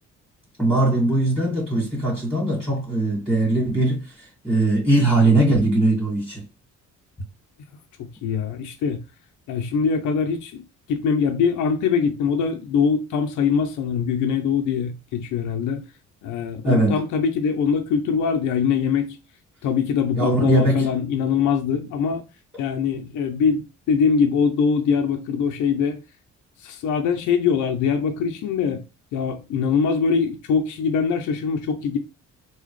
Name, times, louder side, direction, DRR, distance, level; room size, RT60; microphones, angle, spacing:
voice 1, 0.6-6.4 16.6-17.0 20.2-20.9, right 2 dB, ahead, 1.8 m, -20 dB
voice 2, 8.2-9.0 9.5-10.6 10.9-15.9 16.2-19.2 19.6-22.2 22.6-26.0 26.6-28.8 29.1-32.0, left 6 dB, 80° left, 0.6 m, -22 dB
3.8 x 2.3 x 3.1 m
cardioid pair, 90°, 30 cm